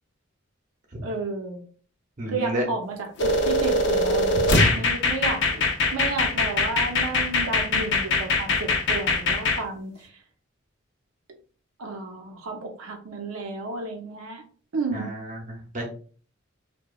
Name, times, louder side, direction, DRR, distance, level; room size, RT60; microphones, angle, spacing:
voice 1, 1.0-1.6 2.3-5.6 5.9-10.1 11.8-14.4 14.7-15.1, right 3 dB, 85° right, 2 dB, 0.5 m, -32 dB
voice 2, 2.2-2.6 14.9-15.9, right 1 dB, 35° right, 0 dB, 0.7 m, -31 dB
sound 1, 3.2-9.6, left 2 dB, 55° left, 0.5 m, -22 dB
2.8 x 2.1 x 2.3 m, 0.42 s
head